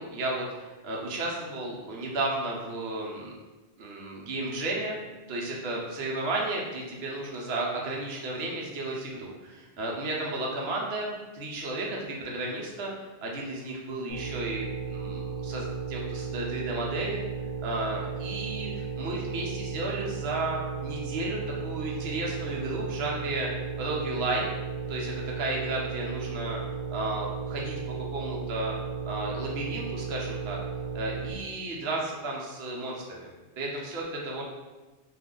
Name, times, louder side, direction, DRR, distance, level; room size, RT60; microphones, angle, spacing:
voice 1, 0.0-3.3 3.8-5.0 5.3-12.9 13.2-17.2 17.6-23.5 23.8-24.4 24.9-26.6 26.9-27.7 28.1-28.7 29.1-30.6 30.9-33.3 33.6-34.4, right 2 dB, 65° right, -2 dB, 0.9 m, -33 dB
sound 1, 14.1-31.3, right 5 dB, 80° left, 1.0 m, -35 dB
2.5 x 2.4 x 3.6 m, 1.2 s
omnidirectional pair, 1.2 m